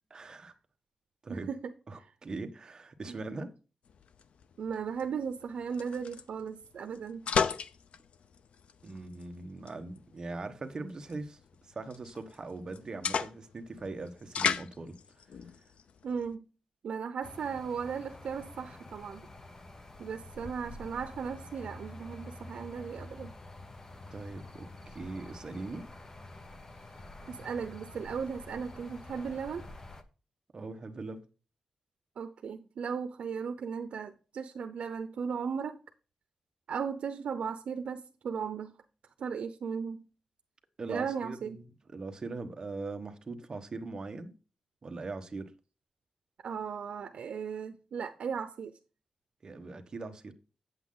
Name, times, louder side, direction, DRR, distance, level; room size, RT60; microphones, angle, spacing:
voice 1, 0.1-0.5 1.2-1.5 1.9-3.5 8.8-11.4 11.7-15.0 24.1-25.9 30.5-31.2 40.8-44.3 44.8-45.5 49.4-50.3, right 3 dB, 35° right, 1.2 m, -41 dB
voice 2, 1.3-2.1 3.1-3.2 4.6-7.3 16.0-16.4 16.8-19.2 20.0-23.3 27.3-29.7 32.2-35.8 36.7-38.7 39.2-40.0 40.9-41.6 46.4-48.7, right 6 dB, 85° right, 0.7 m, -36 dB
sound 1, 3.8-16.3, left 6 dB, 75° left, 0.6 m, -37 dB
sound 2, 17.2-30.0, left 2 dB, 25° left, 0.9 m, -48 dB
8.6 x 8.1 x 3.8 m
wide cardioid pair, 165°, 2 cm